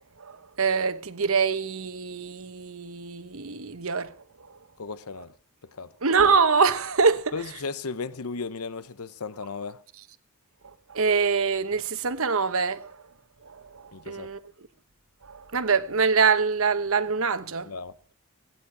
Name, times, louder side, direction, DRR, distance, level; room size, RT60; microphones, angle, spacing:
voice 1, 0.2-4.1 6.0-7.3 10.9-12.9 13.7-14.4 15.3-17.7, right 5 dB, 75° right, 1.1 m, -24 dB
voice 2, 4.8-5.3 5.8-5.9 7.3-9.8 13.9-14.3 17.6-17.9, left 4 dB, 90° left, 0.9 m, -35 dB
21.0 x 9.5 x 5.9 m
head